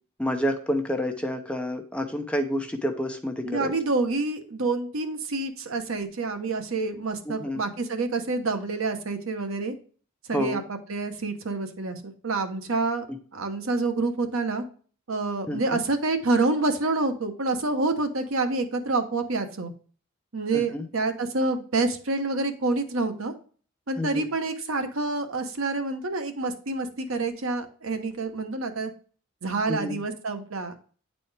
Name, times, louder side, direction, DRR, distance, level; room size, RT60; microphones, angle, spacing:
voice 1, 0.2-3.7 7.3-7.6 10.3-10.6 15.5-15.6 20.5-20.9 24.0-24.3 29.7-30.0, equal, 5° left, 5 dB, 0.6 m, -29 dB
voice 2, 3.4-9.7 10.3-13.1 13.3-14.6 15.1-19.7 20.3-23.3 23.9-28.9 29.4-30.7, right 3 dB, 70° right, 7 dB, 1.0 m, -27 dB
9.1 x 4.2 x 3.3 m, 0.42 s
head